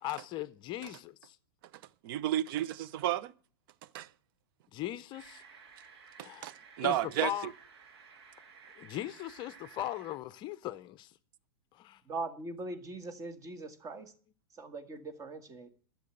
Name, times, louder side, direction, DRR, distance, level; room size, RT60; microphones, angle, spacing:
voice 1, 0.0-1.4 4.7-5.4 6.2-6.4 6.8-7.5 8.8-11.1 11.7-12.0, left 13 dB, 35° left, 0.6 m, -38 dB
voice 2, 2.0-3.3 3.9-4.1 6.2-7.5, right 12 dB, 55° right, 0.7 m, -32 dB
sound 1, 5.1-10.2, right 5 dB, 75° right, 2.2 m, -55 dB
voice 3, 12.1-14.1 14.5-15.7, right 3 dB, 25° right, 1.7 m, -41 dB
11.0 x 7.4 x 7.7 m
hypercardioid pair, 120°, 13 cm